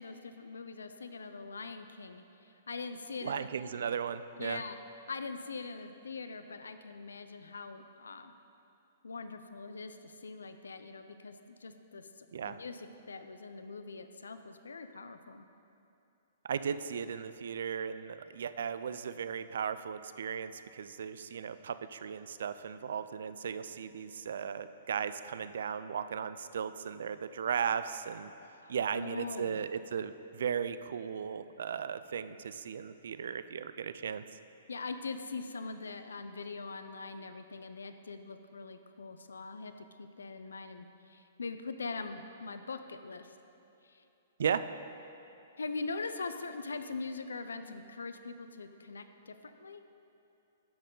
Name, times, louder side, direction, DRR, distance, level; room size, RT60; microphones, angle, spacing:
voice 1, 0.0-3.5 4.4-4.8 5.1-8.3 9.0-15.4 28.6-29.6 34.7-43.4 43.8-44.0 45.6-49.8, left 4 dB, 85° left, 9 dB, 0.5 m, -42 dB
voice 2, 3.2-4.6 12.3-12.6 16.4-28.3 28.7-34.2 44.4-44.6, right 7 dB, 70° right, 13 dB, 0.4 m, -36 dB
11.5 x 7.6 x 3.9 m, 2.8 s
hypercardioid pair, 125°, 0 cm